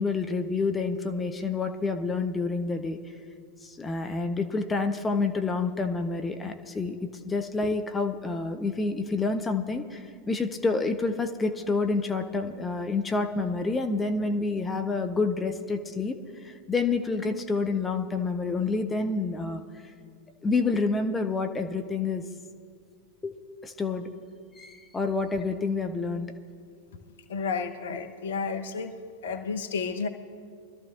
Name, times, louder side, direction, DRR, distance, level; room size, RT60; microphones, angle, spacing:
voice 1, 0.0-3.0 3.6-7.0 7.2-16.2 16.4-19.6 20.4-22.2 23.2-23.3 23.6-24.1 24.6-26.3, left 3 dB, 15° left, 6 dB, 0.8 m, -28 dB
voice 2, 27.3-28.9 29.2-30.1, left 5 dB, 65° left, 8 dB, 0.9 m, -31 dB
24.5 x 13.0 x 2.5 m, 2.2 s
figure-of-eight pair, 90°, 0 cm